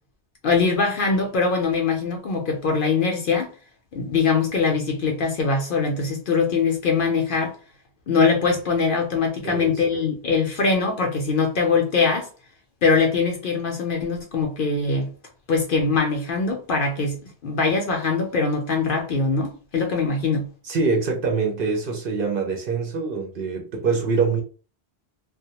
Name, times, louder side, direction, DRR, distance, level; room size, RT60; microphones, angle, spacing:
voice 1, 0.4-3.5 3.9-7.6 8.1-12.3 12.8-15.1 15.5-20.5, left 4 dB, 60° left, 0.6 m, -22 dB
voice 2, 9.4-9.8 20.6-24.4, right 4 dB, 60° right, 0.7 m, -24 dB
2.2 x 2.1 x 2.8 m
omnidirectional pair, 1.2 m